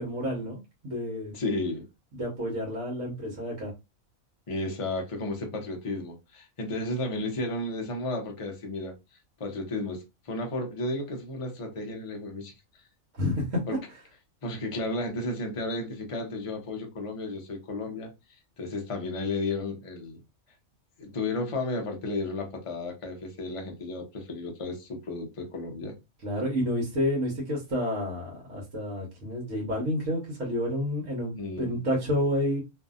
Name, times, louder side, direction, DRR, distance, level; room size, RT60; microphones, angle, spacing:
voice 1, 0.0-1.3 2.1-3.7 13.2-13.6 26.2-32.6, left 1 dB, 65° right, 1.3 m, -29 dB
voice 2, 1.3-1.9 4.5-8.9 9.4-12.5 13.7-13.8 14.4-18.1 18.6-20.2 21.0-26.0 31.3-31.8, left 2 dB, 35° left, 0.5 m, -33 dB
2.7 x 2.6 x 2.3 m
omnidirectional pair, 1.5 m